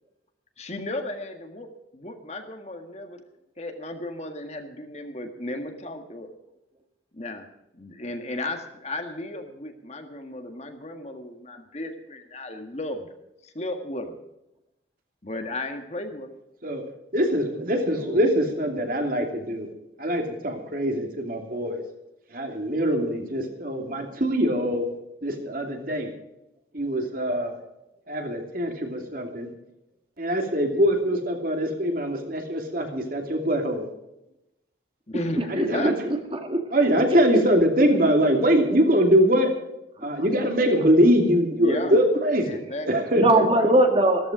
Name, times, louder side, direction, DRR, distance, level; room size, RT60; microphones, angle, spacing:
voice 1, 0.6-1.7 1.9-3.2 3.6-6.3 7.1-7.4 7.7-13.1 13.4-14.2 15.2-16.3 17.9-18.3 35.1-35.9 41.6-42.0 42.4-43.7, left 1 dB, 35° left, 5 dB, 1.7 m, -34 dB
voice 2, 17.1-19.7 20.0-21.8 22.3-24.9 25.2-26.1 26.7-27.6 28.1-29.5 30.2-33.9 35.5-35.9 36.7-39.5 40.0-42.6 42.9-43.2, equal, 50° right, 3 dB, 2.8 m, -23 dB
voice 3, 35.4-36.6 39.3-39.4 40.0-40.1 43.2-44.3, right 1 dB, 30° right, 5 dB, 1.8 m, -21 dB
14.5 x 14.0 x 5.0 m, 0.88 s
head